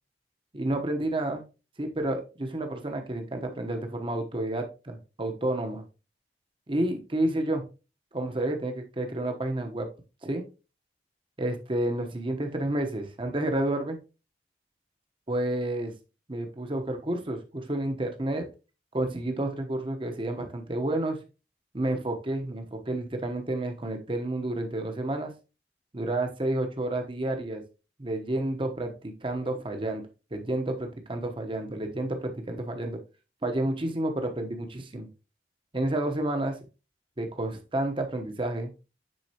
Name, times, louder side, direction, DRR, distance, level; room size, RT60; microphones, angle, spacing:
voice 1, 0.5-1.4 1.8-5.8 6.7-7.7 8.1-9.9 10.2-10.4 11.4-14.0 15.3-15.9 16.3-18.5 18.9-21.2 21.7-25.3 25.9-27.6 28.0-30.0 30.3-33.0 33.4-35.1 35.7-36.6 37.2-38.7, right 1 dB, 30° right, 5 dB, 0.9 m, -30 dB
9.4 x 4.2 x 2.9 m, 0.31 s
head